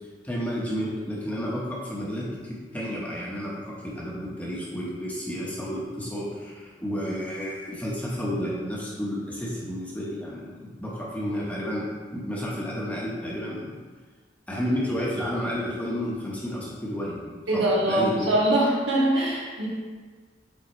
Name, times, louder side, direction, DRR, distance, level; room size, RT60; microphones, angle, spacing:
voice 1, 0.2-11.9 12.1-13.8 14.5-18.4, equal, 10° left, -6 dB, 1.1 m, -31 dB
voice 2, 17.5-19.7, right 1 dB, 80° right, -6 dB, 1.9 m, -23 dB
9.0 x 3.9 x 3.1 m, 1.4 s
head